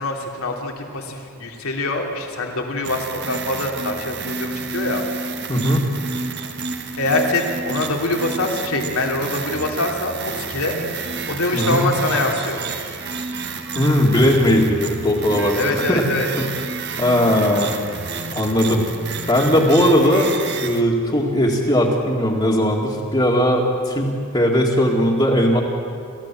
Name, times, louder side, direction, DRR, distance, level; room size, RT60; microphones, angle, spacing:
voice 1, 0.0-5.0 7.0-10.8 11.3-12.6 15.6-16.3, left 2 dB, 85° left, 1 dB, 3.2 m, -24 dB
sound 1, 2.8-20.8, right 4 dB, 50° right, 1.5 m, -30 dB
voice 2, 5.5-5.8 11.5-11.9 13.7-15.6 15.9-16.1 16.4-16.5 17.0-17.7 18.3-18.9 19.3-20.4 20.6-25.6, equal, 25° left, -5 dB, 2.1 m, -18 dB
29.5 x 14.5 x 7.6 m, 2.5 s
head